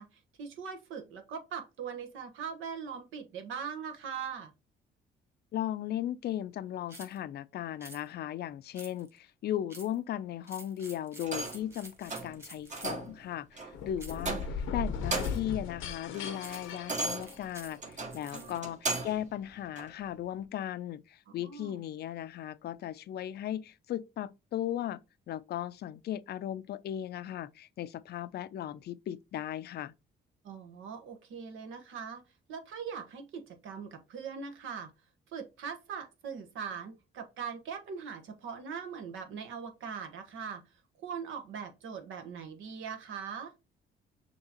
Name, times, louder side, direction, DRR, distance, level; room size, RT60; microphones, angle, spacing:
voice 1, 0.0-4.5 18.3-18.6 21.3-21.8 30.4-32.2 32.5-34.9 35.3-40.6 41.0-43.5, right 6 dB, 85° right, 1.1 m, -41 dB
voice 2, 5.5-25.0 25.3-29.9, left 11 dB, 55° left, 0.4 m, -37 dB
sound 1, 6.9-7.2 7.8-8.0 8.7-9.2 9.7-10.0 10.4-13.1 14.0-14.3 15.1-15.5 16.4-16.8 17.2-18.6, right 1 dB, 15° right, 1.6 m, -50 dB
sound 2, 11.2-11.7 12.1-12.4 12.7-13.2 13.6-13.7 14.2-14.7 15.0-15.5 15.9-19.3 19.8-19.9, right 3 dB, 35° right, 1.3 m, -36 dB
sound 3, 13.7-17.7, left 5 dB, 90° left, 0.7 m, -37 dB
6.4 x 2.9 x 2.8 m
cardioid pair, 90°, 20 cm